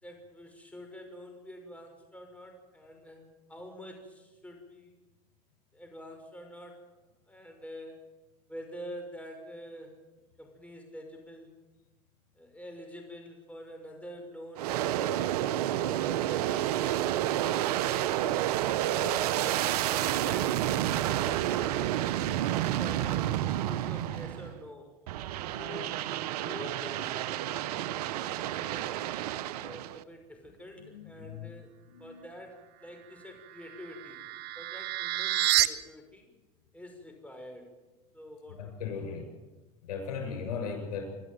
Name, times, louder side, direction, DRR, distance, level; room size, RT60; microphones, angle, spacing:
voice 1, 0.0-5.0 5.7-7.0 7.3-8.2 8.5-10.1 10.4-11.5 12.4-15.4 15.8-17.2 17.7-18.5 19.0-22.2 22.7-24.9 25.6-26.1 26.4-29.0 29.6-31.7 32.0-34.2 34.6-36.3 36.7-37.7 38.1-39.2, left 1 dB, 5° left, 4 dB, 5.9 m, -47 dB
Aircraft, 14.6-24.6 25.1-30.0, right 12 dB, 85° right, 0.8 m, -30 dB
voice 2, 30.8-31.5 31.9-32.2 38.6-39.3 39.8-41.1, left 6 dB, 85° left, 5 dB, 7.1 m, -37 dB
sound 1, 33.4-35.7, right 15 dB, 60° right, 1.2 m, -29 dB
26.5 x 13.0 x 9.3 m, 1.1 s
hypercardioid pair, 85°, 19 cm